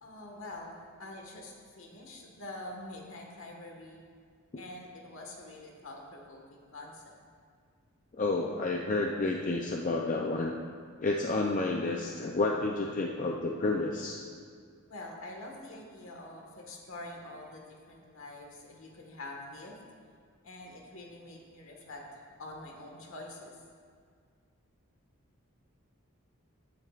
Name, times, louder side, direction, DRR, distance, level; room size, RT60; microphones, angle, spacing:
voice 1, 0.0-4.1 4.6-7.1 11.0-11.3 14.9-19.8 20.4-23.7, left 2 dB, 65° left, 0 dB, 1.6 m, -46 dB
voice 2, 8.2-10.5 11.0-14.2, left 2 dB, 35° left, 0 dB, 0.5 m, -30 dB
14.0 x 8.7 x 2.4 m, 2.1 s
head